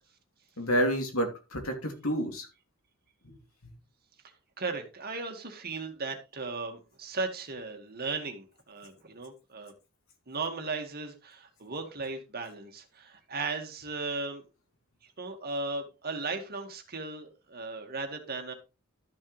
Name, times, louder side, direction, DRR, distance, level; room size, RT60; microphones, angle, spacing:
voice 1, 0.6-2.5 3.2-3.4 3.6-3.7, equal, 80° left, 3 dB, 3.0 m, -29 dB
voice 2, 4.6-9.7 10.3-14.4 15.0-18.5, right 3 dB, 50° right, 4 dB, 2.0 m, -36 dB
13.0 x 6.7 x 3.3 m, 0.29 s
head